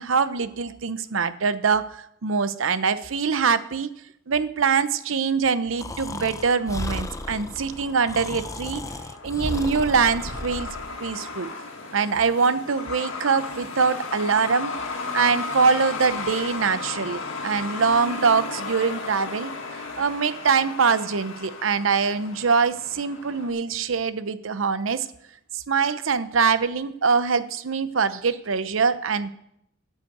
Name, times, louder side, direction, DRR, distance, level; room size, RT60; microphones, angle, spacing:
voice 1, 0.0-3.9 4.3-8.8 9.2-10.7 11.0-11.5 11.9-14.7 15.1-19.5 20.0-25.1 25.5-29.3, right 5 dB, 85° right, 13 dB, 0.7 m, -23 dB
Breathing, 5.8-10.9, left 1 dB, 15° left, 0.6 m, -34 dB
Truck, 6.1-23.5, left 4 dB, 90° left, 1.9 m, -35 dB
13.0 x 5.6 x 7.9 m, 0.76 s
head